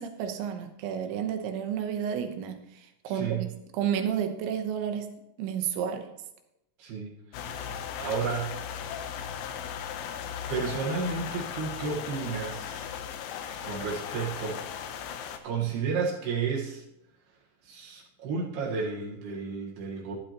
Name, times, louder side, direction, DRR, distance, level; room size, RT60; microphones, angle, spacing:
voice 1, 0.0-2.6 3.0-5.1 5.4-6.0, right 8 dB, 90° right, 6 dB, 3.3 m, -31 dB
voice 2, 3.1-3.5 6.8-7.7 8.0-8.5 10.5-12.9 13.2-14.6 15.4-16.8 17.6-20.2, right 5 dB, 70° right, -2 dB, 3.3 m, -32 dB
sound 1, 7.3-15.4, left 8 dB, 75° left, 2.3 m, -37 dB
12.0 x 12.0 x 2.9 m, 0.87 s
omnidirectional pair, 5.1 m